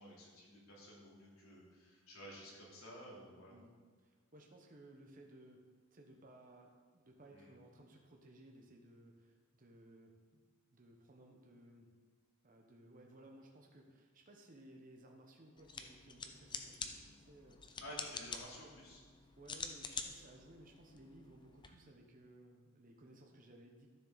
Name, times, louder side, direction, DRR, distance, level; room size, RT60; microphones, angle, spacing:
voice 1, 0.0-3.5 7.3-7.5 17.8-19.0, equal, 90° left, -4 dB, 3.2 m, -53 dB
voice 2, 3.5-5.6 5.9-10.5 10.7-11.9 12.4-17.8 19.4-23.9, right 1 dB, 40° right, 1 dB, 1.1 m, -60 dB
sound 1, 15.6-21.7, left 5 dB, 20° left, 0.6 m, -48 dB
13.0 x 7.1 x 4.1 m, 1.5 s
head